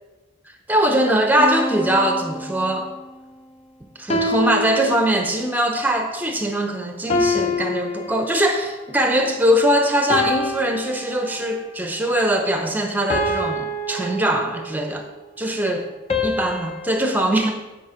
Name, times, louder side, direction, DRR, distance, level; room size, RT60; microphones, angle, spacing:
voice 1, 0.7-2.9 4.0-15.0 15.4-15.9 16.2-17.6, right 1 dB, 10° right, 4 dB, 0.7 m, -21 dB
sound 1, 1.4-3.0 4.1-5.6 7.1-8.8 10.1-11.6 13.1-14.8 16.1-17.1, left 2 dB, 30° left, 0.7 m, -26 dB
9.4 x 5.1 x 5.0 m, 1.1 s
head